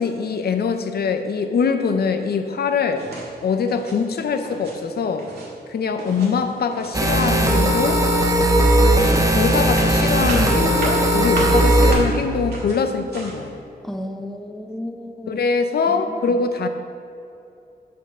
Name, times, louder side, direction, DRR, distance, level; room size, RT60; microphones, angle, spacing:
voice 1, 0.0-3.0 3.4-5.3 5.7-8.0 9.1-13.5 15.3-16.7, left 5 dB, 75° left, 7 dB, 0.6 m, -23 dB
sound 1, 2.9-3.3 3.6-4.0 4.3-4.7 5.0-5.5 6.0-7.0 7.2-7.7 8.0-13.5, right 2 dB, 80° right, 1.9 m, -33 dB
sound 2, 6.9-11.9, right 1 dB, 20° right, 0.8 m, -17 dB
voice 2, 13.8-15.4 15.9-16.4, left 1 dB, ahead, 5 dB, 0.4 m, -33 dB
8.2 x 4.6 x 6.0 m, 2.8 s
wide cardioid pair, 155°, 16 cm